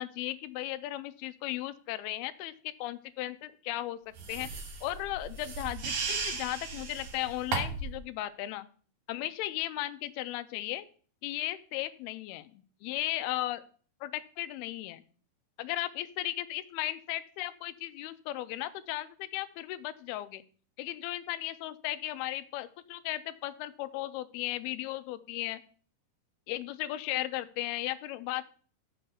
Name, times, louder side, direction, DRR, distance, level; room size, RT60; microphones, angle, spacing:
voice 1, 0.0-2.5 2.8-4.0 4.3-8.7 9.1-10.9 11.2-13.6 14.0-15.0 15.6-20.4 20.8-25.6 26.5-28.4, left 15 dB, 85° left, 13 dB, 2.5 m, -36 dB
sound 1, 4.2-8.0, right 4 dB, 60° right, 2.9 m, -36 dB
6.7 x 6.6 x 7.0 m, 0.43 s
omnidirectional pair, 4.5 m